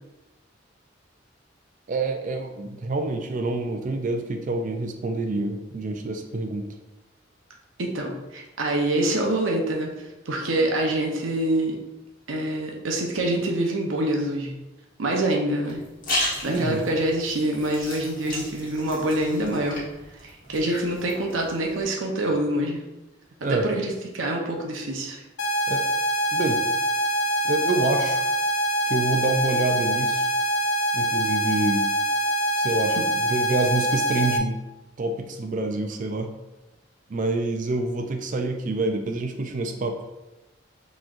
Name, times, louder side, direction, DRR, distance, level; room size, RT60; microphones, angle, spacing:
voice 1, 1.9-6.7 16.4-16.8 23.4-23.7 25.7-25.8 26.3-26.6 27.4-28.2 28.9-30.3 30.9-31.9 32.6-34.6 35.0-36.3 37.1-40.0, right 2 dB, 40° right, 5 dB, 0.4 m, -27 dB
voice 2, 7.8-9.9 10.3-11.8 12.3-14.5 15.0-15.8 16.4-19.8 20.2-22.8 23.5-25.2, right 1 dB, 90° right, 0 dB, 0.7 m, -25 dB
sound 1, 15.7-21.8, left 1 dB, 45° left, 1.3 m, -34 dB
sound 2, 25.4-34.4, right 1 dB, 80° left, 0.5 m, -24 dB
6.0 x 3.1 x 2.5 m, 1.0 s
head